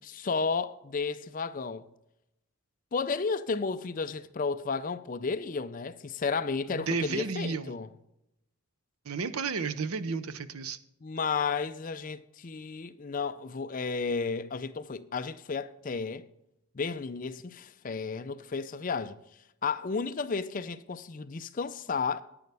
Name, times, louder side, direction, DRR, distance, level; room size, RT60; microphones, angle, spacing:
voice 1, 0.0-1.8 2.9-7.9 11.0-16.3 16.7-19.2 19.6-22.2, left 4 dB, 35° left, 0.4 m, -32 dB
voice 2, 6.7-7.7 9.1-10.8, right 4 dB, 75° right, 0.6 m, -32 dB
10.5 x 9.5 x 3.4 m
head